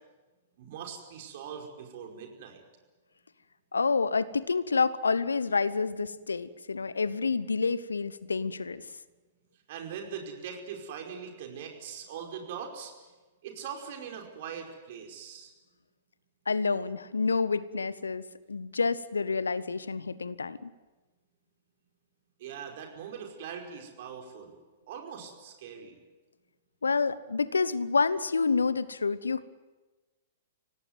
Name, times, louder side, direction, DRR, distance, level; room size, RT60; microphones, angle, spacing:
voice 1, 0.6-2.6 9.7-12.9 13.4-15.5 22.4-24.6 24.9-26.0, right 7 dB, 50° right, 3 dB, 5.1 m, -41 dB
voice 2, 3.7-8.9 16.5-18.2 18.5-20.7 26.8-29.5, left 4 dB, 75° left, 18 dB, 1.0 m, -28 dB
25.0 x 18.0 x 9.4 m, 1.2 s
figure-of-eight pair, 105°, 0 cm